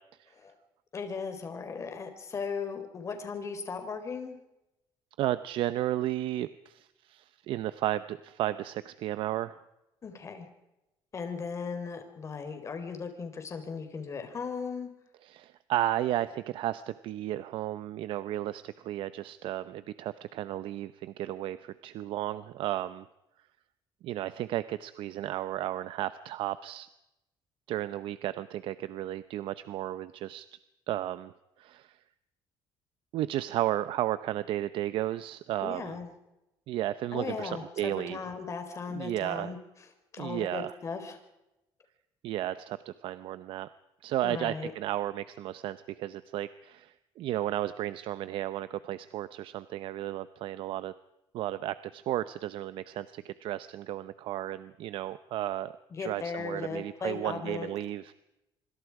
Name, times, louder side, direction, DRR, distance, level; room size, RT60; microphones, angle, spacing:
voice 1, 0.9-4.4 10.0-10.5 11.1-14.9 35.6-36.1 37.1-39.6 40.1-41.2 44.2-44.7 55.9-57.7, left 5 dB, 35° left, 6 dB, 4.4 m, -37 dB
voice 2, 5.2-9.6 15.2-23.0 24.0-26.9 27.7-30.5 30.9-31.3 31.6-32.0 33.1-36.0 36.7-38.2 38.9-39.5 40.2-40.8 42.2-43.7 44.0-50.9 51.3-55.7 56.0-58.2, right 13 dB, 75° right, 13 dB, 0.8 m, -33 dB
26.0 x 25.5 x 4.9 m, 0.91 s
cardioid pair, 135°, 9 cm